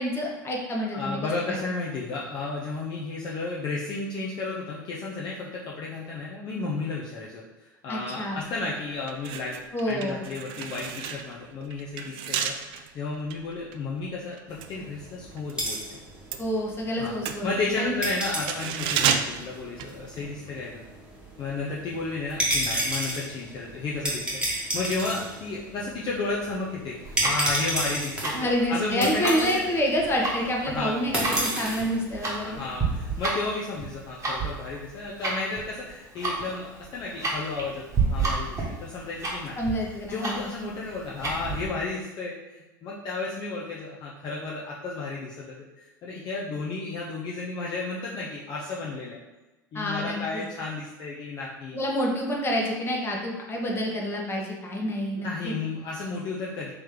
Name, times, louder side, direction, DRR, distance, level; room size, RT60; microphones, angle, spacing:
voice 1, 0.0-1.6 7.9-8.4 9.7-10.2 16.4-18.0 28.3-32.6 39.6-40.5 49.7-50.4 51.7-55.5, equal, 20° left, -1 dB, 1.0 m, -28 dB
voice 2, 0.9-9.6 9.8-16.0 17.0-20.8 21.4-29.6 30.6-31.0 32.4-39.6 40.1-49.2 49.7-51.8 55.1-56.7, left 3 dB, 40° left, -4 dB, 0.6 m, -33 dB
sound 1, 8.4-8.6 9.0-15.6 15.9-20.5 20.8-21.0, right 8 dB, 50° right, 0.4 m, -32 dB
sound 2, 14.5-33.2, right 1 dB, 10° right, 1.2 m, -33 dB
Tick-tock, 27.0-41.7, right 4 dB, 25° right, 1.2 m, -31 dB
3.1 x 3.1 x 3.7 m, 1.1 s
hypercardioid pair, 80°, 11 cm